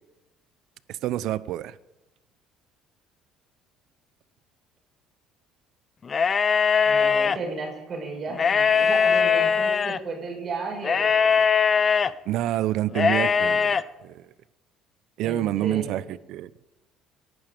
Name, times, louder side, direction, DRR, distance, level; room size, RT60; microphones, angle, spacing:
voice 1, 1.0-1.8 12.3-14.2 15.2-16.5, right 14 dB, 75° right, 0.7 m, -27 dB
sound 1, 6.1-7.4 8.3-10.0 10.8-12.1 12.9-13.8, left 6 dB, 35° left, 0.6 m, -21 dB
voice 2, 6.9-11.4 15.2-15.9, right 3 dB, 45° right, 5.2 m, -34 dB
18.5 x 11.0 x 5.1 m
cardioid pair, 105°, 0 cm